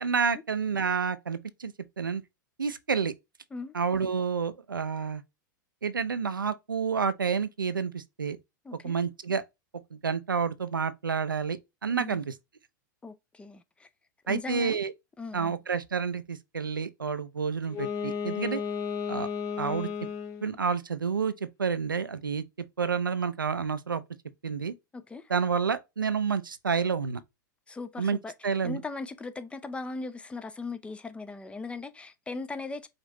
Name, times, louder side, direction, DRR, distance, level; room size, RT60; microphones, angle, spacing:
voice 1, 0.0-2.2 2.6-3.1 3.7-5.2 5.8-8.4 8.8-9.4 9.9-12.3 14.3-14.9 15.3-18.6 19.1-19.3 19.6-19.9 20.4-22.4 22.8-24.0 24.4-24.7 25.3-27.2 28.0-28.2 28.4-28.8, right 6 dB, 90° right, 0.4 m, -29 dB
voice 2, 8.6-9.0 11.9-12.2 13.0-13.9 14.3-14.8 15.2-15.6 24.9-25.3 27.7-32.9, left 3 dB, 10° left, 0.4 m, -39 dB
Wind instrument woodwind instrument, 17.6-20.6, left 6 dB, 35° left, 0.9 m, -33 dB
5.0 x 2.6 x 3.0 m
figure-of-eight pair, 95°, 11 cm